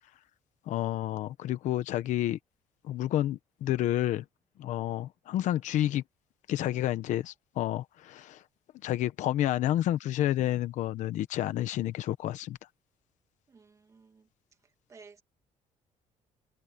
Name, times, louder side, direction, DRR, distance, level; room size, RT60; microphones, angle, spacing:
voice 1, 0.7-2.4 2.8-4.2 4.6-6.0 6.5-8.4 8.8-12.6, left 13 dB, 65° left, 1.0 m, -30 dB
voice 2, 13.5-14.2 14.9-15.2, right 4 dB, 25° right, 2.2 m, -54 dB
cardioid pair, 175°, 13 cm